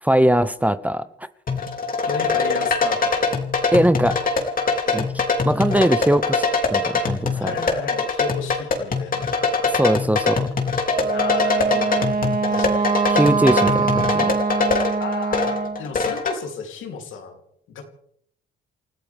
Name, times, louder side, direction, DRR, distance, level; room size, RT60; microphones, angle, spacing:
voice 1, 0.0-1.1 3.7-4.4 4.9-5.1 5.4-6.4 6.7-7.5 9.7-10.5 13.1-14.3, right 1 dB, 5° right, 13 dB, 0.8 m, -20 dB
sound 1, 1.5-16.4, left 4 dB, 45° left, 3.0 m, -23 dB
voice 2, 2.1-3.4 4.8-5.1 7.4-9.3 11.1-12.0 12.5-13.1 15.0-17.4 17.7-17.8, left 6 dB, 80° left, 3 dB, 3.2 m, -33 dB
Wind instrument woodwind instrument, 10.9-15.8, right 4 dB, 45° right, 2.3 m, -23 dB
29.5 x 14.0 x 3.5 m, 0.67 s
cardioid pair, 90°, 20 cm